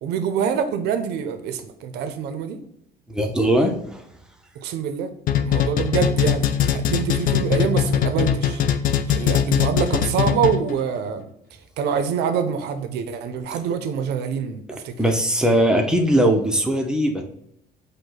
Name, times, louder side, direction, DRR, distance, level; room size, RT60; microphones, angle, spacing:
voice 1, 0.0-2.6 4.6-5.1 5.4-6.5 6.7-8.6 9.1-11.3 11.8-15.0, right 7 dB, 80° right, 9 dB, 0.6 m, -25 dB
voice 2, 3.1-4.0 15.0-17.2, right 1 dB, 5° right, 3 dB, 0.6 m, -20 dB
sound 1, 5.3-10.8, left 9 dB, 55° left, 0.4 m, -21 dB
5.1 x 2.2 x 3.9 m, 0.77 s
cardioid pair, 110°, 17 cm